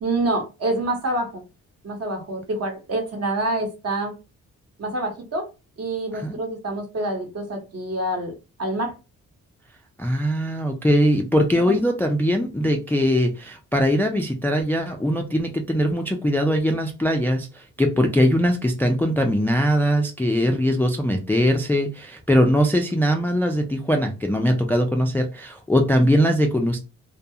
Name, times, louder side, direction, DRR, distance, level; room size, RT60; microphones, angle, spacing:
voice 1, 0.0-1.4 1.8-4.1 4.8-5.5 5.8-8.3 8.6-8.9 11.6-11.7, right 2 dB, 45° right, 1.0 m, -26 dB
voice 2, 10.0-26.8, equal, 5° left, 0.3 m, -21 dB
2.3 x 2.3 x 2.7 m
cardioid pair, 85°, 34 cm